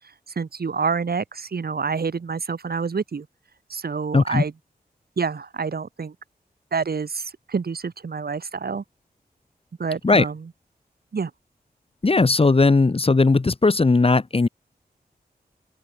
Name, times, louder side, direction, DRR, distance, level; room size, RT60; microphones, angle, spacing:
voice 1, 0.4-3.3 3.7-4.5 5.2-6.1 6.7-8.8 9.8-10.5 11.1-11.3, right 5 dB, 70° right, 7.0 m, -27 dB
voice 2, 4.1-4.4 10.0-10.2 12.0-14.5, left 3 dB, 35° left, 1.4 m, -17 dB
open air
wide cardioid pair, 70°, 16 cm